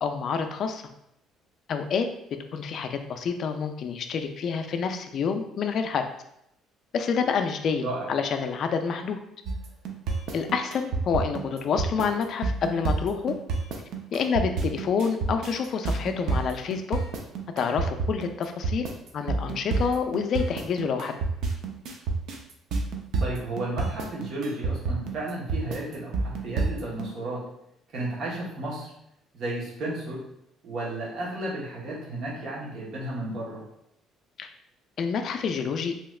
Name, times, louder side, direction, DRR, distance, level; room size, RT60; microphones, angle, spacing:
voice 1, 0.0-0.8 1.7-2.1 2.5-6.0 6.9-9.2 10.3-13.3 14.1-17.0 17.6-18.9 19.1-21.2 34.4-34.5 35.0-35.9, left 6 dB, 50° left, 6 dB, 0.3 m, -28 dB
sound 1, 9.5-27.1, right 3 dB, 70° right, 0.5 m, -28 dB
voice 2, 23.2-27.4 27.9-28.9 29.3-30.2 30.6-33.6, right 1 dB, 50° right, -4 dB, 1.0 m, -33 dB
3.1 x 2.8 x 2.3 m, 0.78 s
cardioid pair, 145°, 0 cm